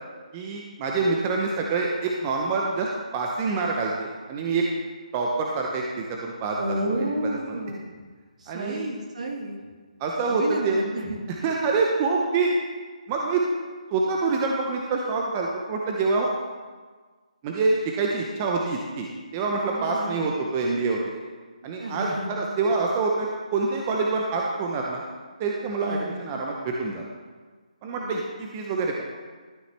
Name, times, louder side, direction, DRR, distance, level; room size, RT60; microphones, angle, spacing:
voice 1, 0.3-4.6 5.1-7.6 8.5-8.9 10.0-10.8 11.3-12.5 13.1-13.4 13.9-16.3 17.4-21.0 21.6-25.0 25.4-27.0 27.8-28.9, right 4 dB, 20° right, -1 dB, 0.6 m, -26 dB
voice 2, 6.6-7.8 8.4-9.6 10.3-11.5 19.7-20.2 21.8-22.4 25.8-26.1 27.8-28.2, right 1 dB, 60° right, 1 dB, 1.7 m, -31 dB
12.5 x 6.5 x 3.3 m, 1.4 s
hypercardioid pair, 165°, 4 cm